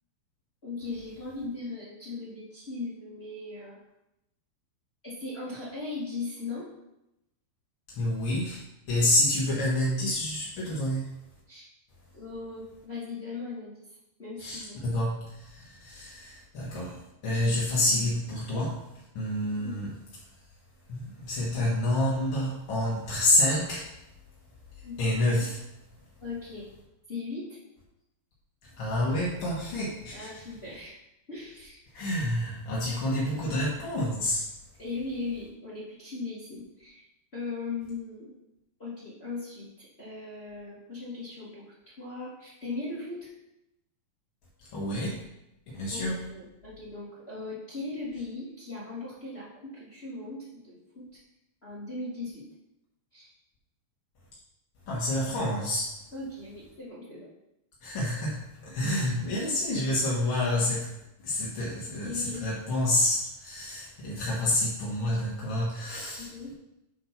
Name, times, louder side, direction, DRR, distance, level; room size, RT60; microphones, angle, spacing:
voice 1, 0.6-3.8 5.0-6.7 11.5-11.7 12.1-14.9 19.6-19.9 24.8-25.0 25.3-25.4 26.2-26.7 27.1-27.6 30.1-31.0 31.3-31.8 33.3-33.4 34.8-37.0 37.3-38.3 38.8-43.3 45.9-51.2 51.6-52.4 53.1-53.3 56.1-57.3 59.2-59.3 62.0-62.4 66.2-66.5, left 3 dB, 35° left, -7 dB, 0.9 m, -38 dB
voice 2, 7.9-8.6 8.9-11.1 14.4-18.8 19.1-19.9 20.9-23.9 25.0-25.6 28.8-30.3 31.9-34.5 44.7-45.2 45.7-46.2 54.9-55.9 57.8-60.9 61.2-66.5, left 1 dB, 55° left, -6 dB, 1.4 m, -28 dB
7.5 x 4.5 x 5.8 m, 0.86 s
omnidirectional pair, 4.5 m